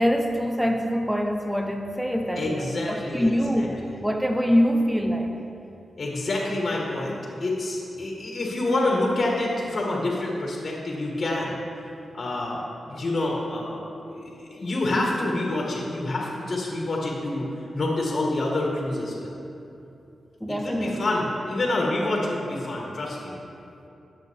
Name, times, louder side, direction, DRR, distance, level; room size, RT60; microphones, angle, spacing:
voice 1, 0.0-5.3 20.4-21.0, equal, 5° right, 4 dB, 0.8 m, -24 dB
voice 2, 2.4-3.7 6.0-11.6 12.1-12.6 12.9-13.8 14.1-17.5 17.7-19.3 20.6-23.3, left 2 dB, 55° left, -2 dB, 1.7 m, -27 dB
12.0 x 7.9 x 3.6 m, 2.8 s
cardioid pair, 50°, 0 cm